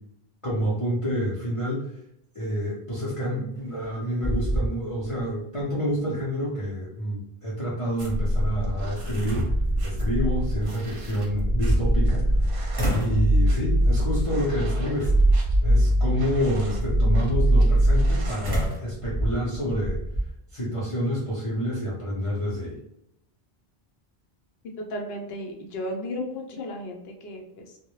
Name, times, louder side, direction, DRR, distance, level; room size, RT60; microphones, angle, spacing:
voice 1, 0.4-1.9 2.4-9.5 9.8-12.6 12.9-15.1 15.6-20.0 20.5-22.8, equal, 40° left, -6 dB, 0.5 m, -28 dB
sound 1, 3.6-3.9 4.2-5.2 5.6-5.7 8.4-8.5 9.0-10.0 11.3-12.4 12.7-13.3 13.8-14.2 15.0-15.4 18.4-20.3, right 1 dB, 25° right, 0.6 m, -28 dB
sound 2, 8.0-18.7, right 1 dB, 65° right, 0.7 m, -23 dB
voice 2, 24.8-27.8, left 1 dB, 70° left, 2 dB, 0.8 m, -34 dB
2.1 x 2.0 x 2.9 m, 0.80 s
omnidirectional pair, 1.1 m